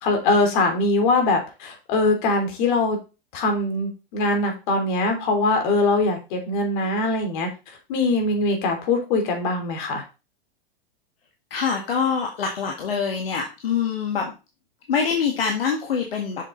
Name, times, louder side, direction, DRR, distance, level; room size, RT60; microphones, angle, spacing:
voice 1, 0.0-3.0 3.3-7.5 7.9-10.0, left 2 dB, 55° left, 3 dB, 3.2 m, -22 dB
voice 2, 11.5-14.3 14.9-16.5, left 6 dB, 75° left, 1 dB, 1.8 m, -25 dB
7.4 x 6.7 x 3.9 m, 0.30 s
hypercardioid pair, 105°, 30 cm